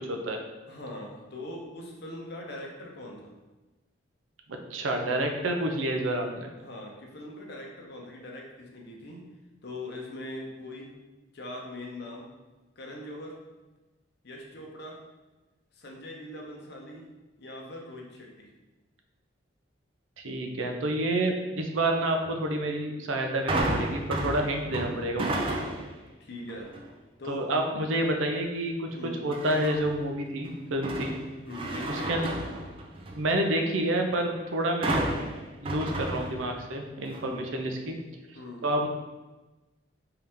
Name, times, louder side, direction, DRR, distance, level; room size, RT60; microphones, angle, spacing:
voice 1, 0.1-0.4 4.7-6.5 20.2-25.4 27.3-31.1 31.9-32.3 33.1-35.0 35.6-37.9 38.6-38.9, right 1 dB, 85° right, 3 dB, 0.5 m, -29 dB
voice 2, 0.7-3.3 6.6-9.3 9.6-10.9 11.3-12.3 12.8-13.4 14.2-15.0 15.7-17.1 17.4-18.5 26.2-26.7 27.2-27.4 28.9-29.2 31.4-32.5 37.1-37.5 38.3-38.7, left 1 dB, 55° left, -1 dB, 0.7 m, -41 dB
sound 1, 23.5-26.0 26.5-26.9 29.3-30.0 30.4-33.3 34.8-36.8 37.1-37.2, right 1 dB, 25° right, 0.3 m, -32 dB
3.7 x 2.8 x 3.4 m, 1.1 s
head